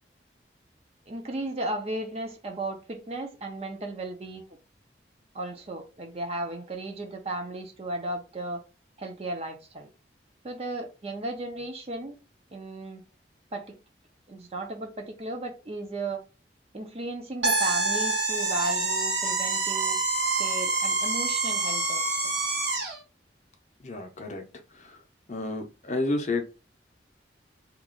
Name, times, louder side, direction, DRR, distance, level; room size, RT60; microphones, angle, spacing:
voice 1, 1.1-4.6 5.3-8.6 9.0-9.9 10.4-12.2 12.5-13.0 13.5-13.8 14.3-16.2 16.7-20.0 20.4-22.3, right 2 dB, 35° right, 0.6 m, -35 dB
sound 1, 17.4-23.0, right 3 dB, 85° right, 1.0 m, -26 dB
voice 2, 23.8-24.4 24.8-24.9 25.3-26.4, left 2 dB, 40° left, 0.6 m, -30 dB
2.9 x 2.4 x 3.7 m
head